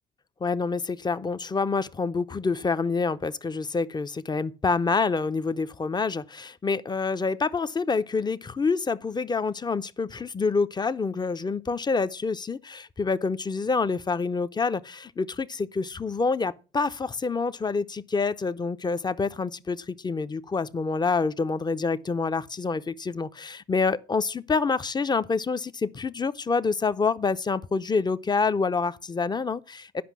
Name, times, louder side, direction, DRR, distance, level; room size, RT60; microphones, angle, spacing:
voice 1, 0.4-30.0, left 4 dB, 20° left, 0.6 m, -27 dB
10.0 x 5.2 x 6.0 m
supercardioid pair, 65°, 19 cm